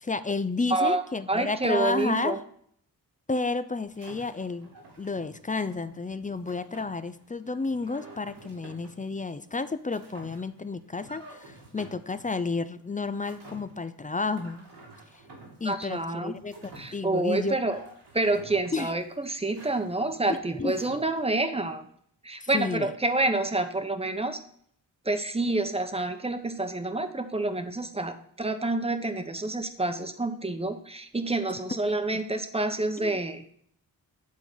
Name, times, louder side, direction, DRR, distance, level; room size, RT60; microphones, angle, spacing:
voice 1, 0.0-2.4 3.3-4.7 5.0-14.7 15.6-17.6 18.7-18.9 20.3-20.7 22.4-22.9 33.0-33.2, left 3 dB, 20° left, 13 dB, 0.5 m, -31 dB
voice 2, 0.7-2.4 15.6-16.4 16.8-17.8 18.1-21.9 22.2-24.4 25.0-33.4, right 2 dB, 15° right, 7 dB, 0.9 m, -28 dB
sound 1, 3.8-21.2, right 2 dB, 80° right, 2.7 m, -51 dB
8.4 x 3.8 x 6.2 m, 0.65 s
cardioid pair, 60°, 40 cm